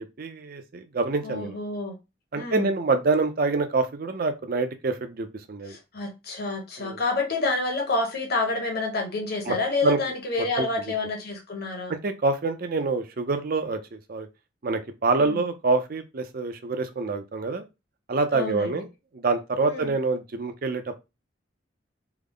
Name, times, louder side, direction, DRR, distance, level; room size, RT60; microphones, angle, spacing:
voice 1, 0.0-1.5 2.3-5.8 6.8-7.0 9.5-9.6 9.8-10.0 10.6-10.7 11.9-14.3 14.6-17.6 18.1-18.9 19.1-21.0, right 3 dB, 50° right, 0.5 m, -26 dB
voice 2, 1.2-2.0 2.3-2.7 5.6-11.9 15.2-15.4 18.3-18.8 19.6-19.9, left 3 dB, 55° left, 1.1 m, -28 dB
3.5 x 2.0 x 3.6 m
head